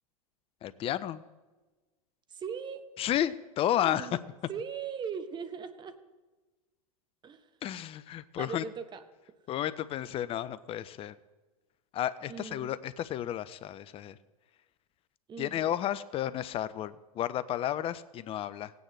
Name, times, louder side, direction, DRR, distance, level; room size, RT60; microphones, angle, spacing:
voice 1, 0.6-1.2 3.0-4.1 7.6-8.6 9.5-11.1 11.9-14.2 15.4-18.7, left 11 dB, 30° left, 16 dB, 0.6 m, -32 dB
voice 2, 2.3-2.9 3.7-4.2 4.5-6.0 7.2-7.5 8.4-9.0 12.3-12.7 15.3-15.8, right 6 dB, 25° right, 10 dB, 1.1 m, -39 dB
17.0 x 9.3 x 3.3 m, 1.2 s
hypercardioid pair, 100°, 19 cm